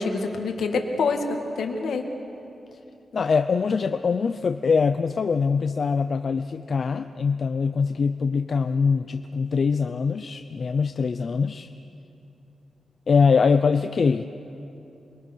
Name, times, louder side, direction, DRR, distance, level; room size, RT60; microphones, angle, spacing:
voice 1, 0.0-2.1, left 4 dB, 90° left, 4 dB, 2.1 m, -26 dB
voice 2, 3.1-11.7 13.1-14.2, left 5 dB, 40° left, 8 dB, 0.5 m, -23 dB
28.0 x 22.0 x 6.3 m, 2.8 s
wide cardioid pair, 175°, 0 cm